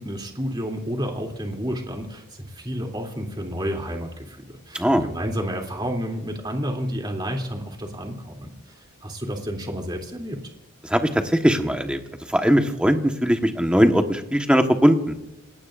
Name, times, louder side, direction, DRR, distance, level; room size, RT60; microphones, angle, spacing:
voice 1, 0.0-10.4, equal, 20° right, 2 dB, 3.0 m, -30 dB
voice 2, 4.7-5.1 10.8-12.0 12.3-15.1, equal, 5° right, 4 dB, 1.4 m, -20 dB
28.0 x 19.5 x 2.6 m, 0.94 s
head